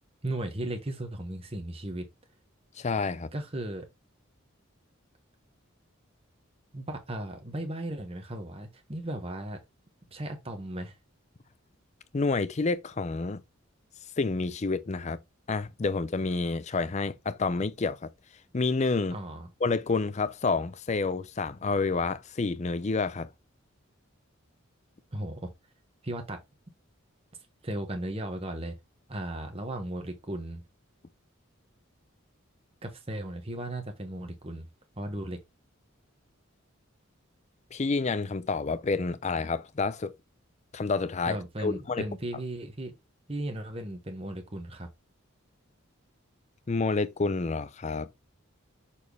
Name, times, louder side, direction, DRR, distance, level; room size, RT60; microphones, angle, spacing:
voice 1, 0.2-2.1 3.3-3.9 6.7-9.6 10.1-11.0 19.1-19.5 25.1-25.5 26.0-26.4 27.6-28.8 29.1-30.6 32.8-34.7 35.0-35.4 41.2-42.9 43.3-44.9, right 1 dB, 30° right, 1.2 m, -36 dB
voice 2, 2.8-3.3 12.1-13.4 14.2-15.2 15.5-18.1 18.5-19.2 19.6-23.3 37.7-40.1 40.7-42.0 46.7-48.1, left 3 dB, 35° left, 0.5 m, -29 dB
6.6 x 4.2 x 3.4 m
head